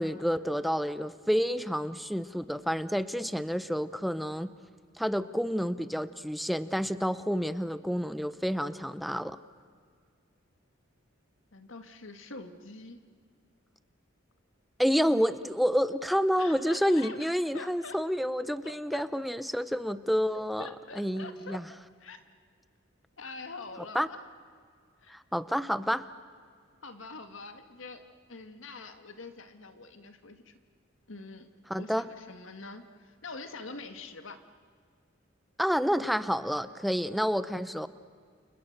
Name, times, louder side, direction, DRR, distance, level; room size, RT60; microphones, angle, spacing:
voice 1, 0.0-4.5 5.0-9.4 14.8-20.7 20.9-21.7 23.9-24.1 25.1-26.1 31.7-32.1 35.6-37.9, equal, ahead, 13 dB, 0.8 m, -29 dB
voice 2, 11.5-13.0 16.4-18.0 18.6-19.0 20.6-21.6 22.0-22.2 23.2-24.2 25.0-25.1 26.8-28.0 28.3-30.5 31.1-31.5 31.8-34.4, left 3 dB, 75° left, 7 dB, 1.9 m, -45 dB
30.0 x 29.5 x 6.7 m, 2.1 s
head